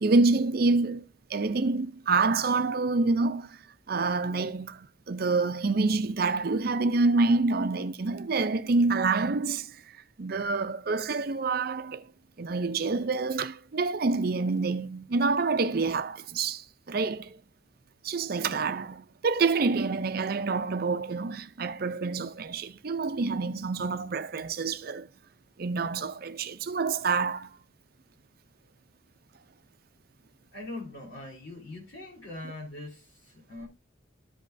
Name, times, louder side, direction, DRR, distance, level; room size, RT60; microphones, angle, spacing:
voice 1, 0.0-1.0 1.3-3.6 3.9-9.8 10.2-12.1 12.4-17.4 18.0-25.1 25.6-27.5, right 3 dB, 50° right, 0.5 m, -27 dB
voice 2, 30.5-33.7, left 2 dB, 75° left, 3.7 m, -42 dB
13.5 x 5.3 x 2.6 m
head